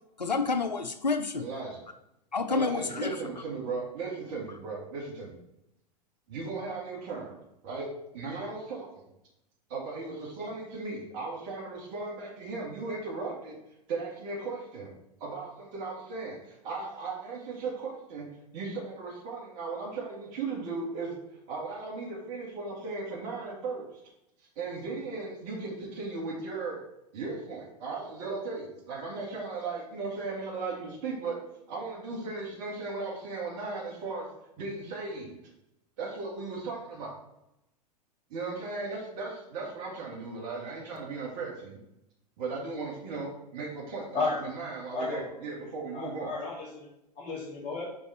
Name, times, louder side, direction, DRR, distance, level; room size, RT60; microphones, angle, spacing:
voice 1, 0.2-1.5 2.3-3.2, left 4 dB, 85° left, 0.6 m, -29 dB
voice 2, 1.4-1.8 2.5-5.4 6.3-9.1 9.7-13.6 13.9-14.9 15.2-18.3 18.5-21.2 21.5-23.9 24.6-26.8 27.1-31.4 31.7-34.3 34.6-35.4 36.0-37.2 38.3-41.8 42.4-46.3, right 3 dB, 45° right, 2.4 m, -36 dB
voice 3, 44.9-45.3 45.9-46.9 47.2-47.9, left 3 dB, 35° left, 2.5 m, -33 dB
5.2 x 5.1 x 4.3 m
figure-of-eight pair, 95°, 21 cm